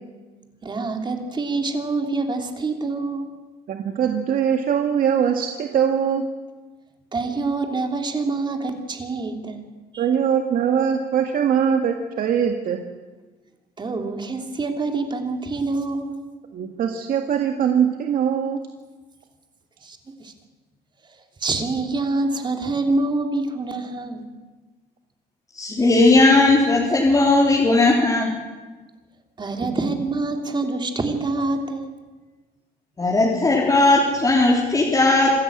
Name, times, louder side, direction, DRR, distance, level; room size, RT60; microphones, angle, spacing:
voice 1, 0.6-3.3 7.1-9.6 9.9-10.0 13.8-16.2 19.8-20.3 21.1-24.3 29.4-31.8, right 3 dB, 25° right, 4 dB, 3.3 m, -26 dB
voice 2, 3.7-6.2 10.0-12.8 16.5-18.6, right 8 dB, 55° right, 4 dB, 1.9 m, -22 dB
voice 3, 25.5-28.3 33.0-35.3, left 2 dB, 20° left, -3 dB, 3.8 m, -17 dB
26.5 x 13.5 x 8.9 m, 1.3 s
cardioid pair, 110°, 17 cm